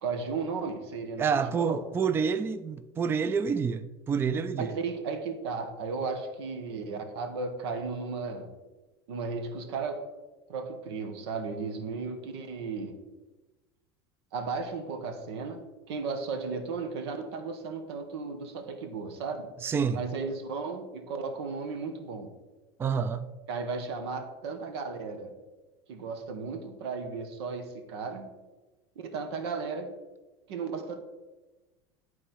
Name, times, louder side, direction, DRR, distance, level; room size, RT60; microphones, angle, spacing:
voice 1, 0.0-1.3 1.5-1.8 4.6-8.5 9.1-10.0 10.5-13.0 14.3-15.6 15.9-19.4 19.9-22.3 23.5-25.3 25.9-28.3 28.9-29.9 30.5-31.0, right 4 dB, 90° right, 1.3 m, -35 dB
voice 2, 1.2-4.7 19.6-20.0 22.8-23.3, right 6 dB, 15° right, 0.3 m, -28 dB
11.0 x 4.3 x 4.4 m
supercardioid pair, 125°, 13 cm